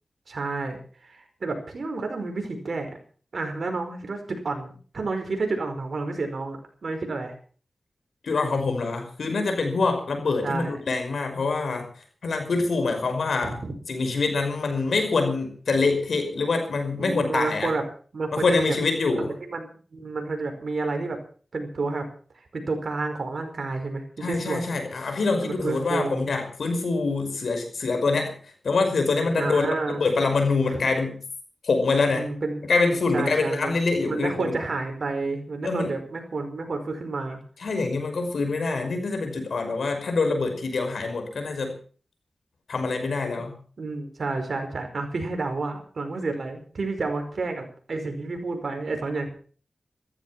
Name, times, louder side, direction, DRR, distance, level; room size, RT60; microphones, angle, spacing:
voice 1, 0.3-2.9 3.3-7.3 10.4-10.7 13.4-13.7 17.0-17.8 18.1-18.8 19.2-21.2 21.5-22.1 22.4-24.7 25.4-26.2 29.4-30.0 30.7-30.8 32.1-32.6 33.1-33.7 34.1-37.4 43.3-43.5 43.8-49.3, right 3 dB, 70° right, 5 dB, 5.1 m, -30 dB
voice 2, 8.2-11.9 12.2-13.6 13.9-17.7 18.3-19.3 24.2-28.3 28.6-31.2 31.6-32.3 32.6-34.5 35.6-35.9 37.6-41.7 42.7-43.6, left 3 dB, 85° left, 6 dB, 5.5 m, -25 dB
15.5 x 14.0 x 6.1 m, 0.43 s
cardioid pair, 50°, 0 cm